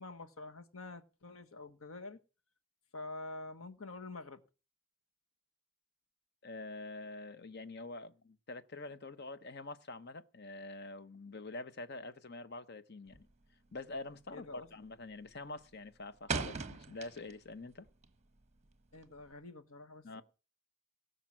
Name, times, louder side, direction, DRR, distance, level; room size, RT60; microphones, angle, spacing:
voice 1, 0.0-2.2 2.9-4.4 14.3-14.9 18.9-20.2, left 3 dB, 70° left, 1.4 m, -47 dB
voice 2, 6.4-13.3 13.7-17.9 20.0-20.2, left 2 dB, 50° left, 0.9 m, -46 dB
sound 1, 13.1-13.5 13.7-14.1 14.4-14.9 15.2-17.5 17.9-19.3, right 4 dB, 30° right, 1.2 m, -40 dB
18.0 x 6.6 x 7.5 m
head